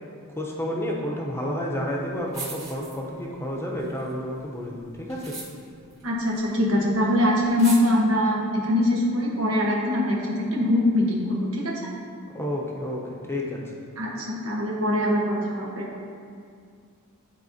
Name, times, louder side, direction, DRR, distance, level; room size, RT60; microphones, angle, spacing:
voice 1, 0.4-5.2 12.3-13.6, equal, 10° left, -2 dB, 0.8 m, -30 dB
sound 1, 2.0-2.1 2.3-3.4 3.7-6.8 7.0-7.1 7.4-7.8, right 3 dB, 30° right, 1.7 m, -39 dB
voice 2, 6.0-11.8 14.0-15.9, left 1 dB, 70° right, -3 dB, 1.3 m, -23 dB
12.0 x 4.2 x 2.8 m, 2.2 s
head